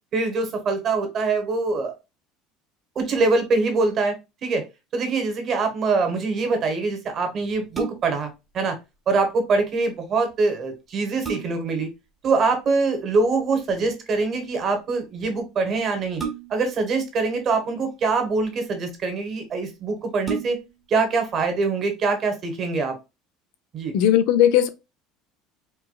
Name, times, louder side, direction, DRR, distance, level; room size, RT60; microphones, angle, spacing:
voice 1, 0.1-1.9 2.9-4.1 4.4-4.6 4.9-8.8 9.1-11.9 12.2-16.2 16.5-20.6 20.9-22.9 23.7-23.9, right 3 dB, 40° right, 1.1 m, -24 dB
sound 1, 7.7-8.3 10.3-10.4 10.9-11.8 13.4-13.7 16.2-16.8 17.8-18.5 19.2-19.3 19.6-19.7 20.2-20.9 21.4-21.5, right 6 dB, 20° right, 0.9 m, -33 dB
voice 2, 23.9-24.7, left 11 dB, 75° left, 0.4 m, -17 dB
4.5 x 2.1 x 2.2 m
supercardioid pair, 120°, 0 cm